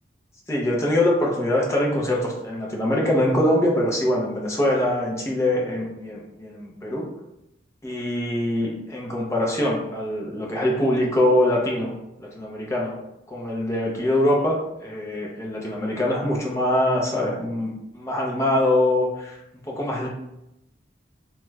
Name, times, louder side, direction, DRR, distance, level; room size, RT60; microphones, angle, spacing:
voice 1, 0.5-7.0 7.8-11.9 12.2-12.9 13.3-19.4 19.6-20.1, left 1 dB, 15° left, -3 dB, 0.6 m, -23 dB
2.9 x 2.3 x 3.1 m, 0.88 s
head